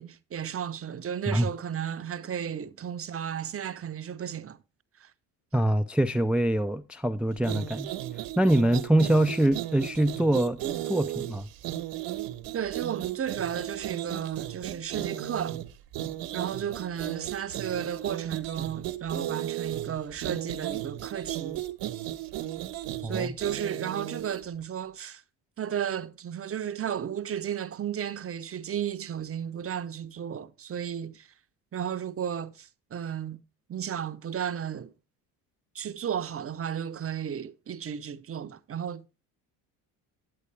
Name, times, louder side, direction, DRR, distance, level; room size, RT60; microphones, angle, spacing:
voice 1, 0.0-4.6 5.0-5.1 12.5-15.6 16.3-21.6 23.0-25.2 25.6-31.3 31.7-33.4 33.7-34.9 35.7-39.0, right 9 dB, 30° right, 0.7 m, -34 dB
voice 2, 5.5-7.9 8.4-10.6 10.8-11.5 23.0-23.3, right 1 dB, 5° right, 0.4 m, -24 dB
sound 1, 7.4-24.4, right 13 dB, 70° right, 1.2 m, -35 dB
9.7 x 8.2 x 3.3 m
supercardioid pair, 80°, 44 cm